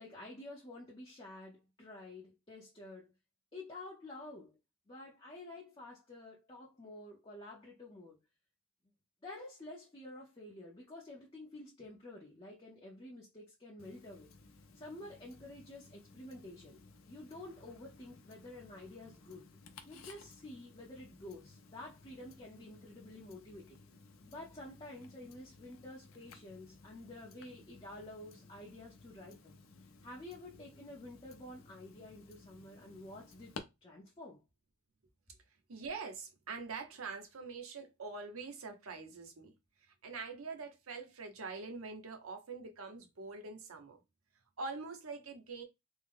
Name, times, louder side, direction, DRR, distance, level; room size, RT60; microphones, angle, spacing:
voice 1, 0.0-3.1 3.5-4.6 4.9-8.2 9.2-14.3 14.7-19.5 19.8-23.8 24.3-29.6 30.0-34.4, left 1 dB, 25° left, 0.7 m, -50 dB
Tick-tock, 13.8-33.6, left 4 dB, 75° left, 0.6 m, -57 dB
voice 2, 35.7-39.5 40.0-44.0 44.6-45.6, right 4 dB, 90° right, 0.9 m, -44 dB
3.5 x 2.1 x 3.5 m
head